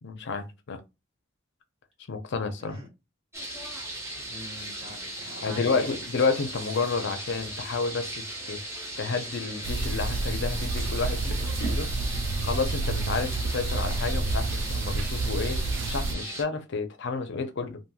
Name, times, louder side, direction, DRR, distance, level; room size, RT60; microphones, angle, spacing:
voice 1, 0.0-0.8 2.1-2.8 5.4-11.8 12.4-17.8, left 4 dB, 65° left, 0.5 m, -30 dB
sound 1, 3.3-16.4, right 1 dB, 15° right, 1.0 m, -38 dB
voice 2, 4.1-5.9 11.7-11.8, left 2 dB, 30° right, 1.7 m, -42 dB
sound 2, 9.6-16.1, right 3 dB, 65° right, 0.3 m, -29 dB
2.9 x 2.6 x 2.2 m
head